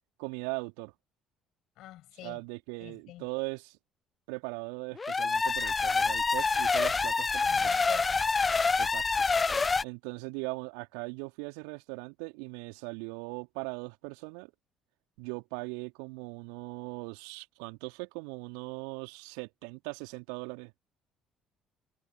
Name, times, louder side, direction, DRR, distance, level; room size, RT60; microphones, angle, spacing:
voice 1, 0.2-0.9 2.2-3.8 4.3-7.8 8.8-9.3 9.8-14.5 15.2-20.7, right 34 dB, 70° right, 3.3 m, -39 dB
voice 2, 1.8-2.4 2.8-3.2 7.5-8.2, left 15 dB, 60° left, 7.7 m, -46 dB
sound 1, 5.0-9.8, left 4 dB, 30° left, 0.3 m, -27 dB
figure-of-eight pair, 50°, 0 cm